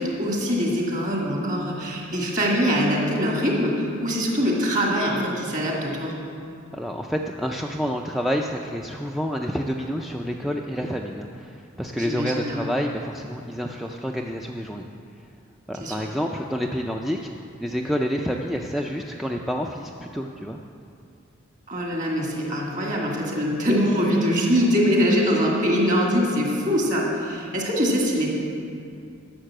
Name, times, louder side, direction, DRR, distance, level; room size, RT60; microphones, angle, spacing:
voice 1, 0.0-6.1 12.0-12.7 15.8-16.0 21.7-28.3, equal, 40° right, -2 dB, 2.2 m, -23 dB
voice 2, 6.7-14.9 15.7-17.3 17.6-20.6, equal, ahead, 1 dB, 0.4 m, -28 dB
11.5 x 6.7 x 7.6 m, 2.5 s
head